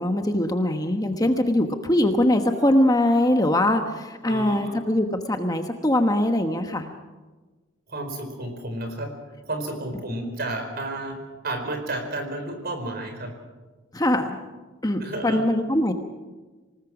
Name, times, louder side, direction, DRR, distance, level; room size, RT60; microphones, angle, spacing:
voice 1, 0.0-6.9 13.9-14.4 14.8-15.9, left 1 dB, 20° left, 6 dB, 1.1 m, -22 dB
voice 2, 4.2-4.8 7.9-9.1 9.4-11.2 11.4-13.3 15.0-15.4, right 1 dB, 50° right, 5 dB, 4.4 m, -31 dB
26.0 x 19.5 x 6.0 m, 1.3 s
head